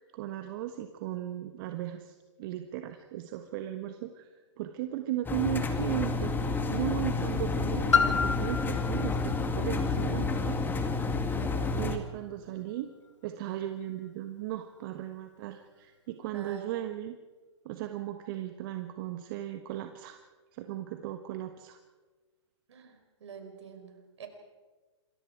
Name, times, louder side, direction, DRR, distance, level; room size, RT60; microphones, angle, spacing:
voice 1, 0.0-4.3 4.6-10.6 11.8-12.9 13.2-17.2 17.6-20.2 20.5-21.8, right 13 dB, 45° right, 6 dB, 1.5 m, -36 dB
Engine, 5.2-12.0, left 4 dB, 15° left, 2.1 m, -30 dB
Piano, 7.9-13.4 14.1-14.2, left 6 dB, 90° left, 2.2 m, -32 dB
voice 2, 16.3-16.8 22.7-24.3, right 7 dB, 70° right, 5 dB, 4.9 m, -47 dB
28.0 x 22.5 x 4.8 m, 1.3 s
hypercardioid pair, 120°, 15 cm